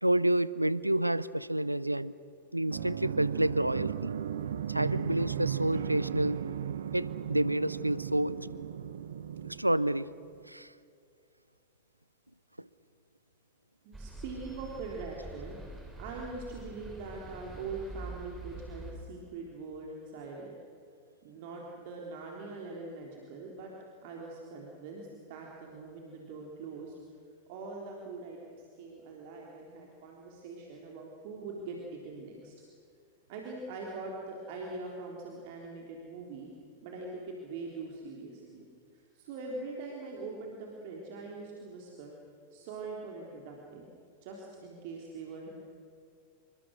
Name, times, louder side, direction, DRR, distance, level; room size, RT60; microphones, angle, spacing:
voice 1, 0.0-2.1 2.5-4.1 4.7-6.4 6.9-8.4 9.4-10.1 10.5-10.7 12.6-12.7, right 1 dB, 85° right, 18 dB, 0.6 m, -29 dB
sound 1, 2.7-10.2, right 9 dB, 65° right, 0.9 m, -36 dB
voice 2, 13.8-15.6 16.0-20.5 21.2-23.7 24.0-27.0 27.5-32.6 33.3-36.5 36.8-38.6 38.9-42.2 42.5-43.9 44.2-45.5, right 3 dB, 50° right, -1 dB, 3.6 m, -42 dB
sound 2, 13.9-18.9, right 2 dB, 10° right, 6.2 m, -45 dB
27.5 x 24.5 x 6.5 m, 2.4 s
figure-of-eight pair, 90°, 0 cm